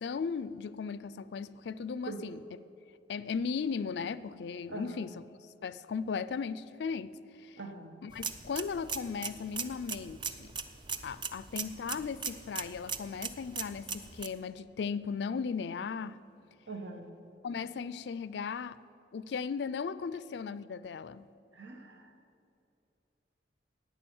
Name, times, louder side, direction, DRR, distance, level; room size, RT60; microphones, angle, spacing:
voice 1, 0.0-2.4 3.1-5.1 5.6-7.6 8.0-10.5 11.0-16.2 17.4-18.8 19.1-21.2, left 5 dB, 65° left, 16 dB, 0.4 m, -37 dB
voice 2, 4.7-5.0 7.6-8.0 16.7-17.1 21.5-22.1, right 3 dB, 85° right, 5 dB, 1.3 m, -42 dB
sound 1, 8.1-14.3, right 6 dB, 25° right, 0.5 m, -40 dB
11.0 x 8.8 x 7.1 m, 2.7 s
head